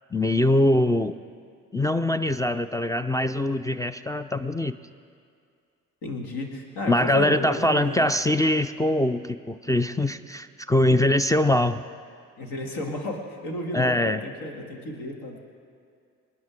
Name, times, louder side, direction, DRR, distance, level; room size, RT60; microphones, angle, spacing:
voice 1, 0.1-1.2 1.7-4.7 6.9-11.8 13.7-14.2, left 1 dB, 10° left, 13 dB, 0.4 m, -23 dB
voice 2, 6.0-8.1 10.9-11.0 12.4-15.4, left 1 dB, 60° left, 2 dB, 2.3 m, -33 dB
26.5 x 9.6 x 3.6 m, 2.3 s
figure-of-eight pair, 45°, 41 cm